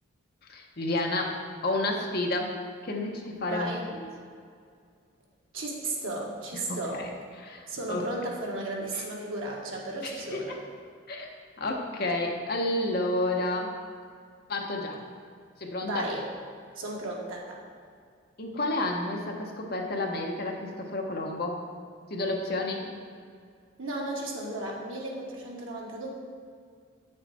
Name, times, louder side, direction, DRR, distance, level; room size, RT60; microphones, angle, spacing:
voice 1, 0.5-2.6 2.8-3.7 6.7-7.0 7.4-8.0 8.9-9.0 10.0-10.6 11.1-11.3 11.6-13.7 14.5-15.0 15.6-16.0 18.4-21.6 22.1-22.9, left 2 dB, 45° left, 1 dB, 1.0 m, -30 dB
voice 2, 3.5-3.8 5.5-7.0 7.7-10.6 15.8-16.2 16.7-17.6 23.8-26.1, right 2 dB, 80° right, -2 dB, 1.6 m, -34 dB
8.3 x 6.7 x 4.3 m, 2.2 s
head